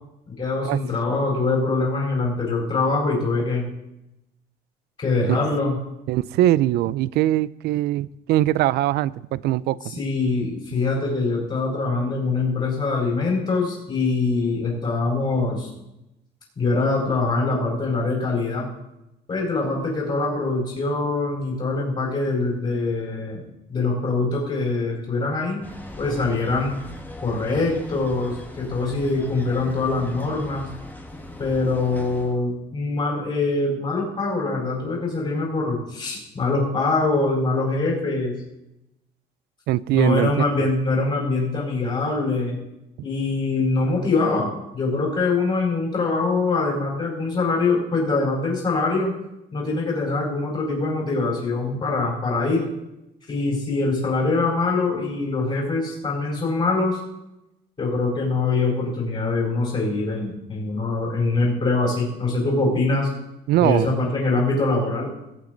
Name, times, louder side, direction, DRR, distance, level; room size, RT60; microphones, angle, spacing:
voice 1, 0.3-3.6 5.0-5.8 10.0-15.7 16.6-18.6 19.3-23.4 23.7-25.6 26.0-26.7 27.2-30.7 31.4-38.3 39.9-42.6 43.0-49.1 49.5-52.6 53.3-57.0 57.8-63.1 63.6-65.1, left 3 dB, 35° left, -5 dB, 4.6 m, -23 dB
voice 2, 6.1-9.8 39.7-40.7 63.5-64.0, right 14 dB, 75° right, 20 dB, 0.4 m, -21 dB
sound 1, 25.6-32.4, left 1 dB, 10° left, 1.4 m, -39 dB
19.0 x 8.2 x 3.9 m, 0.88 s
cardioid pair, 110°, 17 cm